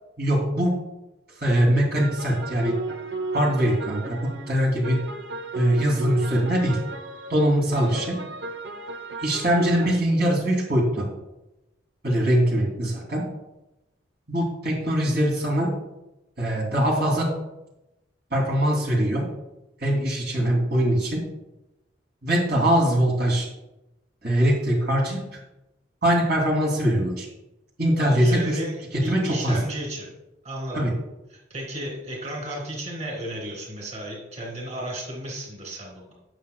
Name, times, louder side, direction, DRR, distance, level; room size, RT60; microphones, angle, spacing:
voice 1, 0.2-0.7 1.4-2.8 3.3-5.0 5.5-6.8 7.3-8.2 9.2-11.1 12.0-13.2 14.3-15.7 16.4-17.3 18.3-19.3 19.8-21.2 22.2-23.5 24.2-25.2 26.0-27.3 27.8-28.6 29.0-29.6 30.7-30.9, right 1 dB, 60° right, -2 dB, 2.9 m, -22 dB
sound 1, 1.4-10.0, right 3 dB, 90° right, 0.9 m, -34 dB
voice 2, 28.0-28.8 29.0-30.1 30.4-30.8 31.3-36.1, right 1 dB, 40° right, -2 dB, 2.9 m, -34 dB
17.0 x 6.7 x 2.3 m, 0.95 s
head